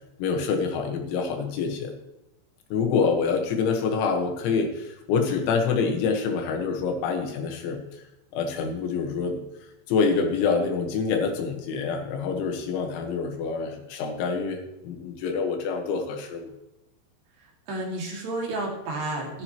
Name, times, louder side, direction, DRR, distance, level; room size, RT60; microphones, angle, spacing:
voice 1, 0.2-1.9 2.7-7.8 8.3-9.4 9.9-16.5, left 5 dB, 80° left, 2 dB, 3.8 m, -26 dB
voice 2, 17.4-19.4, right 2 dB, 60° right, -1 dB, 4.1 m, -31 dB
14.5 x 11.0 x 3.0 m, 0.92 s
omnidirectional pair, 5.4 m